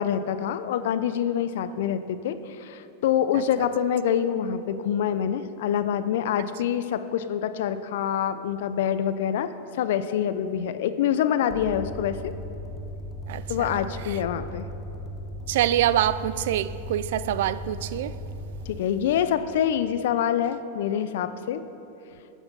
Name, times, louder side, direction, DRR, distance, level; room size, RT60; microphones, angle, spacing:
voice 1, 0.0-12.3 13.5-14.7 18.7-21.6, left 9 dB, 70° left, 0.7 m, -26 dB
sound 1, 11.5-18.8, left 1 dB, 10° left, 1.1 m, -37 dB
voice 2, 15.5-18.1, right 12 dB, 70° right, 0.5 m, -25 dB
20.0 x 8.4 x 5.5 m
hypercardioid pair, 120°, 0 cm